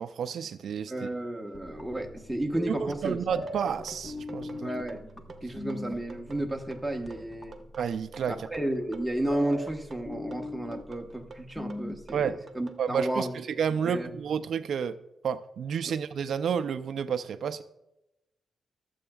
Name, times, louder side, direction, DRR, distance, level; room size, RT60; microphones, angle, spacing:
voice 1, 0.0-1.1 2.8-4.7 7.8-8.5 12.1-12.4 12.8-15.0 15.2-17.6, right 7 dB, 70° right, 10 dB, 0.4 m, -30 dB
voice 2, 0.9-3.2 4.6-5.0 5.4-7.6 8.3-13.4 13.8-14.1 15.9-16.0, right 1 dB, 5° right, 2 dB, 1.2 m, -32 dB
sound 1, 1.5-12.3 12.5-12.6, left 1 dB, 20° left, 1.2 m, -40 dB
sound 2, 3.5-13.2, right 3 dB, 45° right, 1.0 m, -48 dB
23.5 x 7.8 x 2.4 m, 0.90 s
wide cardioid pair, 125°, 0 cm